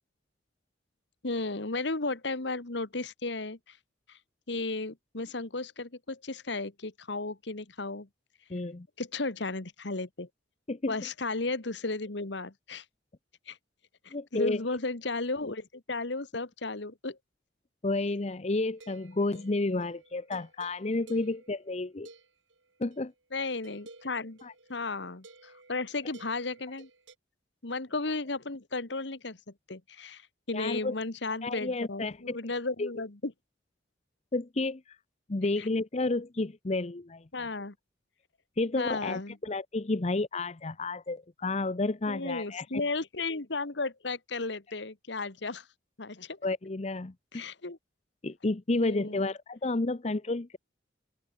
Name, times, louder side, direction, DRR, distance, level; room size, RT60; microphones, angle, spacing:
voice 1, 1.2-3.8 4.1-4.2 4.5-8.1 9.0-10.3 10.9-12.8 13.5-13.6 14.0-17.2 23.3-24.4 24.7-26.9 27.6-29.4 29.7-30.2 30.5-33.3 35.6-35.7 37.3-37.7 38.7-39.4 42.1-45.6 46.0-46.4 47.3-47.8 48.7-49.3, left 3 dB, 65° left, 1.5 m, -34 dB
voice 2, 8.5-8.9 10.7-11.0 14.1-14.6 17.8-22.1 22.8-23.1 24.4-24.5 30.5-30.9 31.4-32.4 32.8-32.9 34.3-35.0 35.3-37.5 38.6-42.8 46.4-47.4 48.2-50.6, left 2 dB, 35° left, 0.7 m, -31 dB
sound 1, 18.7-23.1 23.6-27.2, right 3 dB, 80° right, 7.6 m, -55 dB
open air
head